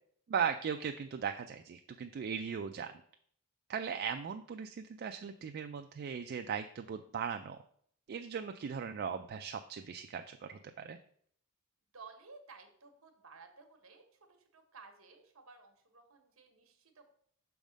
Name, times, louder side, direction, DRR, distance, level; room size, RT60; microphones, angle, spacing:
voice 1, 0.3-2.9 3.7-7.6 8.1-11.0, right 7 dB, 50° right, 6 dB, 0.3 m, -38 dB
voice 2, 11.9-14.0 14.5-17.1, right 4 dB, 65° right, 5 dB, 1.1 m, -55 dB
6.3 x 3.5 x 5.1 m, 0.62 s
head